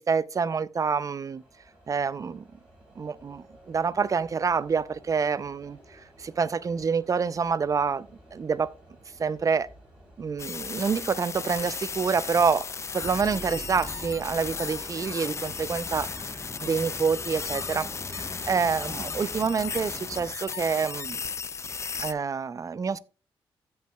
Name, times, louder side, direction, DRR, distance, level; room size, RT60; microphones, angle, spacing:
voice 1, 0.0-1.4 1.9-2.4 3.0-8.7 9.2-9.7 10.2-12.7 12.9-21.2 22.0-23.0, right 5 dB, 40° right, 0.4 m, -27 dB
sound 1, 0.8-12.9, right 1 dB, 10° right, 4.8 m, -54 dB
sound 2, 10.4-22.1, left 5 dB, 30° left, 0.4 m, -35 dB
sound 3, 13.0-20.3, left 1 dB, 10° left, 1.1 m, -42 dB
15.5 x 5.5 x 2.2 m
cardioid pair, 85°, 9 cm